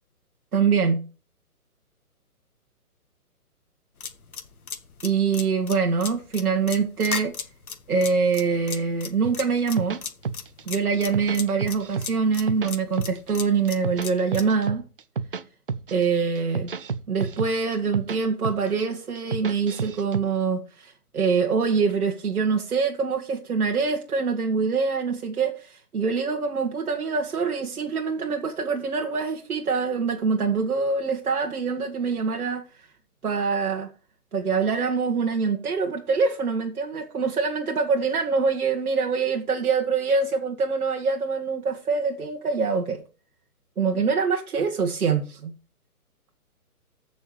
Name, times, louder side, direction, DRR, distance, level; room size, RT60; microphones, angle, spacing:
voice 1, 0.5-1.0 5.0-7.3 7.9-10.0 10.7-14.8 15.9-16.7 17.1-32.9 33.2-33.9 34.3-43.0 43.8-45.5, right 5 dB, 70° right, 1.9 m, -24 dB
sound 1, 4.0-14.5, left 6 dB, 70° left, 2.2 m, -35 dB
sound 2, 9.2-10.6 10.9-12.1 12.3-13.3 13.7-15.4 15.7-16.0 16.4-18.2 18.4-18.8 19.2-20.2, right 5 dB, 40° right, 0.6 m, -30 dB
14.5 x 6.3 x 3.3 m
hypercardioid pair, 165°, 45 cm